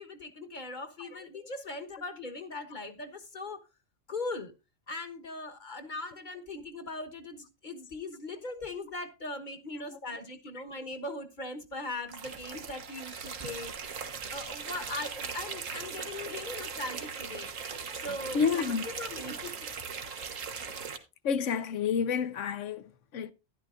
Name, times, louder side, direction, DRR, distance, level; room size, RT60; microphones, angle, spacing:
voice 1, 0.0-3.7 4.1-4.5 4.9-13.7 14.3-17.5 17.9-19.7, left 2 dB, 40° left, 1.3 m, -40 dB
sound 1, 12.1-21.0, right 6 dB, 85° right, 1.6 m, -39 dB
voice 2, 18.3-18.8 21.2-23.3, left 6 dB, 75° left, 1.1 m, -29 dB
12.0 x 11.0 x 2.5 m
omnidirectional pair, 1.3 m